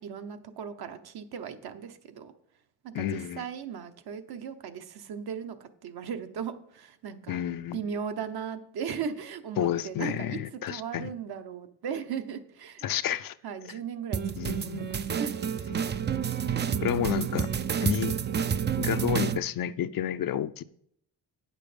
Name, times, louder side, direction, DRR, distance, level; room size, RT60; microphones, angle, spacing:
voice 1, 0.0-2.3 2.8-7.4 7.7-12.8 13.4-15.7 16.5-16.8, right 7 dB, 65° right, 1.0 m, -37 dB
voice 2, 2.9-3.4 7.3-7.8 9.6-11.1 12.8-13.4 13.6-13.7 14.4-14.8 15.7-15.8 16.8-17.5 17.8-18.1 18.8-20.6, left 10 dB, 55° left, 0.5 m, -30 dB
sound 1, 14.1-19.4, right 8 dB, 30° right, 0.3 m, -29 dB
9.3 x 6.6 x 5.0 m
cardioid pair, 120°, 42 cm